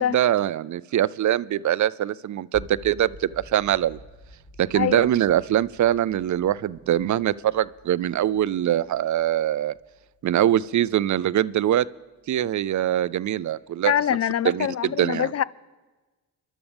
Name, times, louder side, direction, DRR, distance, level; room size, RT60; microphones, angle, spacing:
voice 1, 0.0-4.0 4.6-9.7 10.2-11.9 12.3-13.9 14.4-15.3, right 12 dB, 50° right, 0.5 m, -23 dB
sound 1, 2.5-12.5, equal, 60° left, 4.2 m, -49 dB
voice 2, 4.7-5.1 13.8-15.4, left 10 dB, 40° left, 0.5 m, -24 dB
24.5 x 12.0 x 3.5 m
supercardioid pair, 60°, 39 cm